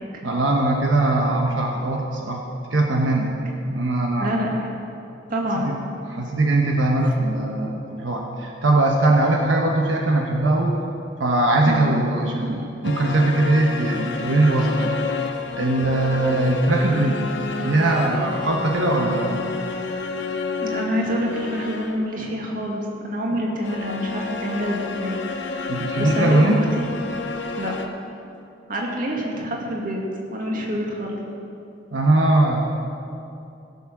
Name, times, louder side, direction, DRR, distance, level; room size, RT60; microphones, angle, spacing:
voice 1, 0.2-2.4 2.7-3.3 3.7-4.4 5.6-5.8 6.0-10.8 11.2-15.0 15.5-17.2 17.6-19.4 23.3-23.4 25.7-26.6 31.9-32.7, right 2 dB, 85° right, 0 dB, 1.1 m, -20 dB
voice 2, 4.2-4.7 5.3-5.7 7.6-7.7 11.6-11.9 20.6-25.2 26.0-26.8 27.6-27.7 28.7-30.0 30.3-31.2, equal, 45° right, -1 dB, 2.0 m, -27 dB
sound 1, 12.8-22.1 23.6-27.9, left 4 dB, 65° left, 0.9 m, -30 dB
16.5 x 7.2 x 6.0 m, 2.7 s
head